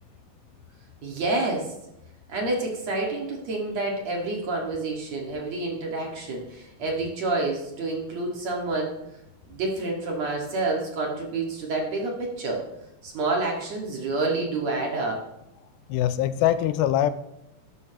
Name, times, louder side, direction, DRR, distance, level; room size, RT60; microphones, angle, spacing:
voice 1, 1.0-1.7 2.3-9.0 9.5-12.6 13.0-15.2, right 2 dB, 50° right, -1 dB, 2.9 m, -28 dB
voice 2, 15.9-17.1, left 11 dB, 85° left, 13 dB, 2.5 m, -22 dB
13.0 x 11.5 x 3.0 m, 0.87 s
omnidirectional pair, 4.2 m